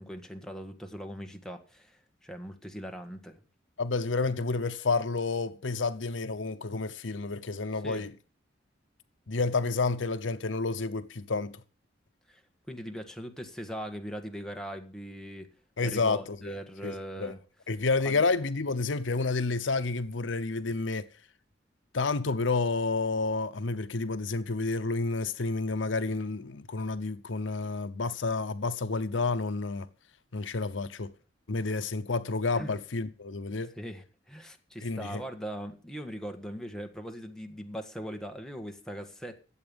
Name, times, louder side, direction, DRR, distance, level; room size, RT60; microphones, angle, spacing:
voice 1, 0.0-3.4 7.8-8.0 12.3-12.4 12.7-15.5 15.8-17.4 18.1-18.2 32.5-32.8 33.8-39.4, equal, 5° left, 1.6 m, -40 dB
voice 2, 3.8-8.1 9.3-11.6 15.8-16.5 16.8-16.9 17.2-17.3 17.7-21.1 21.9-29.9 30.3-31.1 31.5-33.7 34.8-35.2, left 3 dB, 80° left, 0.9 m, -30 dB
12.5 x 8.0 x 7.1 m
head